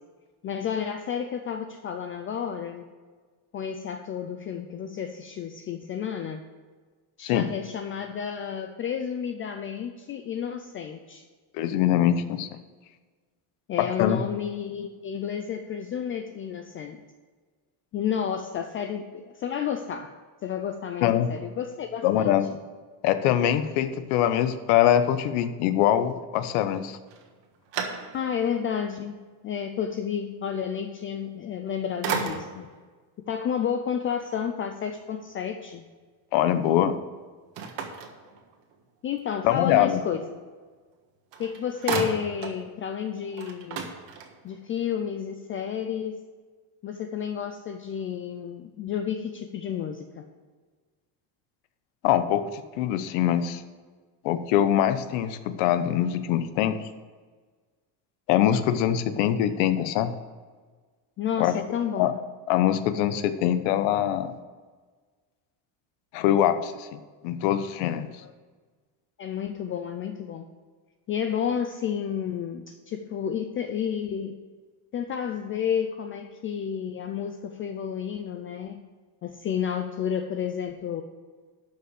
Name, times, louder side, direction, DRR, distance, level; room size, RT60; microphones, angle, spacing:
voice 1, 0.4-2.8 3.5-6.4 7.2-11.2 13.7-17.0 17.9-20.1 20.4-22.4 28.1-29.2 29.4-32.7 33.3-35.9 39.0-40.4 41.4-43.9 44.4-46.2 46.8-50.2 61.2-62.2 68.2-68.3 69.2-70.5 71.1-74.4 74.9-78.8 79.2-81.0, left 8 dB, 30° left, 6 dB, 0.4 m, -31 dB
voice 2, 11.5-12.5 13.8-14.2 21.0-21.3 22.0-22.5 23.0-27.0 36.3-36.9 39.4-40.0 52.0-53.6 54.2-56.8 58.3-60.1 61.4-61.5 62.0-62.1 62.5-64.3 66.1-67.0 67.2-68.1, left 11 dB, 85° left, 10 dB, 1.1 m, -23 dB
sound 1, 27.1-28.5 29.0-29.1 31.4-31.7 32.0-32.8 37.5-38.8 40.9-41.0 41.3-42.6 43.0-43.1 43.3-44.6, right 6 dB, 60° right, 1.6 m, -34 dB
12.0 x 5.7 x 6.6 m, 1.4 s
cardioid pair, 170°, 49 cm